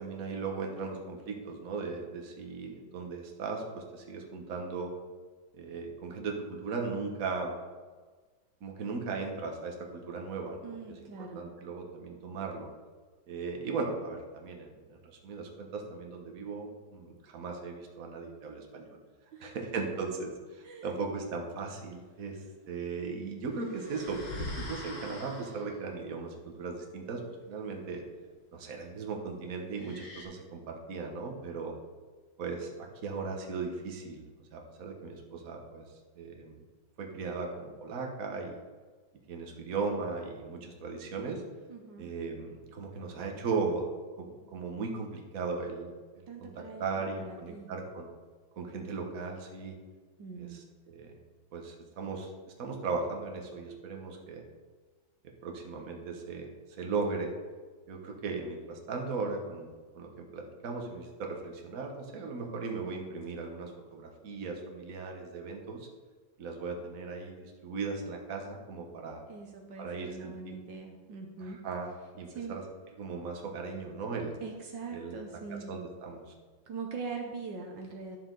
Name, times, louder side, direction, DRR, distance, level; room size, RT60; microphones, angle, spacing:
voice 1, 0.0-4.9 5.6-7.6 8.6-12.7 13.3-19.0 19.4-27.2 27.5-28.0 28.5-31.7 32.4-35.8 36.2-36.6 37.0-38.6 39.3-41.4 42.0-43.8 44.2-48.1 48.6-49.7 50.4-51.2 51.5-52.3 52.6-54.4 55.4-56.5 56.8-57.3 57.9-59.7 59.9-65.9 66.4-69.2 69.8-70.6 71.4-71.9 72.1-72.6 73.0-74.3 74.9-75.4 75.7-76.2, right 4 dB, 50° right, 2 dB, 1.6 m, -37 dB
voice 2, 10.6-11.5 19.3-19.6 20.6-20.9 41.7-42.1 46.3-47.7 50.2-50.6 69.3-71.6 72.3-72.5 74.4-75.7 76.7-78.2, right 4 dB, 70° right, 2 dB, 1.6 m, -42 dB
sound 1, 23.4-25.9 29.7-30.2, left 1 dB, 90° left, 2.6 m, -42 dB
11.0 x 6.9 x 3.9 m, 1.4 s
omnidirectional pair, 2.1 m